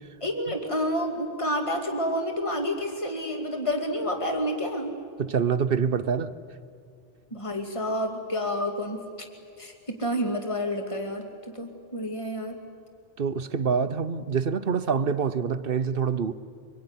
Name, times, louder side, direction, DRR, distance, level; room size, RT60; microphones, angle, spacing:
voice 1, 0.2-4.9 7.3-9.0 9.6-11.3 11.5-12.5, equal, 30° left, 2.6 m, -29 dB
voice 2, 5.2-6.3 13.2-16.3, right 6 dB, 60° right, 1.0 m, -26 dB
24.5 x 23.0 x 9.8 m
omnidirectional pair, 1.1 m